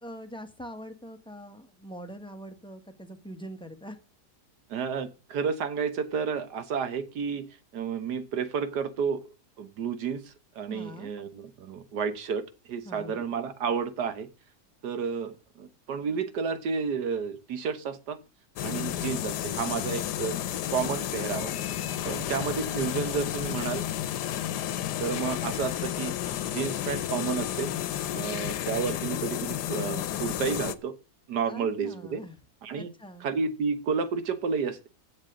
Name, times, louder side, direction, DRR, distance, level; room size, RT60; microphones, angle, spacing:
voice 1, 0.0-4.0 10.7-11.1 12.8-13.2 22.0-22.5 31.5-32.4 32.7-33.3, equal, 5° left, 6 dB, 1.2 m, -43 dB
voice 2, 4.7-7.4 7.7-9.2 9.6-14.3 14.8-18.2 18.6-20.4 20.7-21.6 22.1-23.8 25.0-26.1 26.5-27.7 28.1-30.9 31.3-32.2 32.6-32.9 33.2-34.9, right 6 dB, 80° right, 11 dB, 1.8 m, -31 dB
sound 1, 18.6-30.7, left 12 dB, 90° left, 1.3 m, -32 dB
16.0 x 7.3 x 3.8 m, 0.32 s
omnidirectional pair, 1.7 m